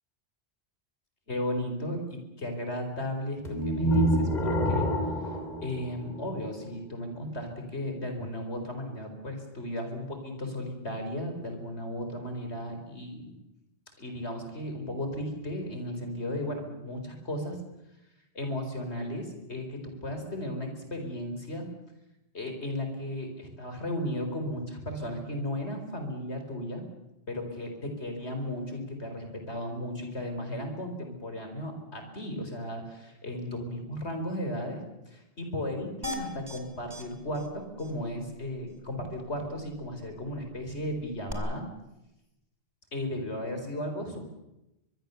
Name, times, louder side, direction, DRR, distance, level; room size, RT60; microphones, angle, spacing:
voice 1, 1.3-4.9 5.6-13.3 14.0-17.6 18.3-21.6 22.3-26.8 27.3-41.6 42.9-44.2, left 1 dB, 90° left, 5 dB, 4.5 m, -35 dB
sound 1, 3.5-6.6, equal, 40° left, 3.4 m, -27 dB
sound 2, 36.0-36.6 36.9-37.0 37.3-37.5 37.8-37.9 41.3-41.4, left 1 dB, 40° right, 3.1 m, -36 dB
23.0 x 23.0 x 6.9 m, 0.93 s
omnidirectional pair, 1.1 m